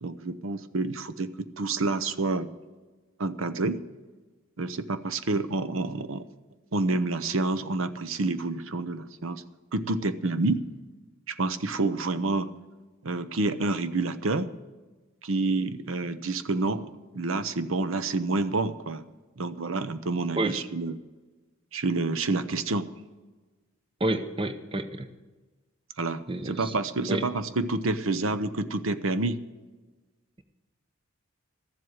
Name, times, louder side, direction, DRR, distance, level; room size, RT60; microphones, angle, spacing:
voice 1, 0.0-2.5 3.2-3.8 4.6-6.2 6.7-9.4 9.7-10.6 11.3-12.5 13.0-14.5 15.2-19.0 19.4-21.0 21.7-22.9 26.0-29.4, right 3 dB, 80° right, 12 dB, 0.8 m, -28 dB
voice 2, 24.0-25.1 26.3-26.7 27.1-27.2, right 1 dB, 25° right, 10 dB, 0.8 m, -29 dB
13.5 x 7.7 x 8.1 m, 1.2 s
head